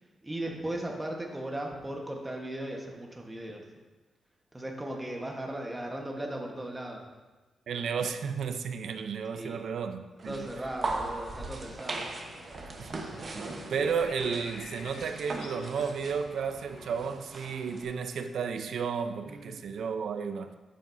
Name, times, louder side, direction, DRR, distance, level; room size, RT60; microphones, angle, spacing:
voice 1, 0.2-3.6 4.5-7.0 9.3-9.6 10.2-12.1 19.3-19.6, right 1 dB, 10° right, 1.3 m, -37 dB
voice 2, 7.7-10.5 12.8-20.5, right 6 dB, 75° right, 0.6 m, -33 dB
sound 1, 10.2-17.8, right 3 dB, 40° right, 1.0 m, -39 dB
sound 2, 11.3-17.2, left 5 dB, 75° left, 0.7 m, -49 dB
10.0 x 7.6 x 2.7 m
wide cardioid pair, 130°, 0 cm